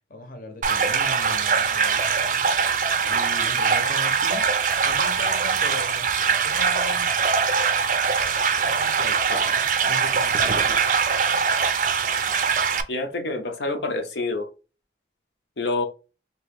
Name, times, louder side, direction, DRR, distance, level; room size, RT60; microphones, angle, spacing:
voice 1, 0.1-2.4 3.1-4.5 4.8-7.1 8.4-10.8, left 1 dB, 50° left, 0.8 m, -38 dB
sound 1, 0.6-12.8, right 6 dB, 45° right, 0.4 m, -22 dB
voice 2, 12.9-14.5 15.6-15.8, left 2 dB, 80° left, 0.8 m, -27 dB
2.9 x 2.9 x 3.4 m
head